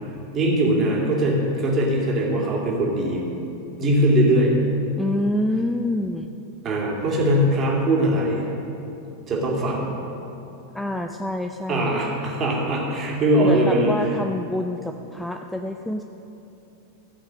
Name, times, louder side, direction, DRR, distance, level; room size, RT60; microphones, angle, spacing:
voice 1, 0.3-3.2 3.8-4.5 6.6-8.5 9.3-9.8 11.7-13.9, right 1 dB, 30° right, -3 dB, 2.4 m, -21 dB
voice 2, 5.0-6.3 10.7-12.0 13.4-16.0, left 1 dB, 5° left, 5 dB, 0.4 m, -27 dB
15.0 x 5.8 x 6.4 m, 2.9 s
figure-of-eight pair, 90°, 0 cm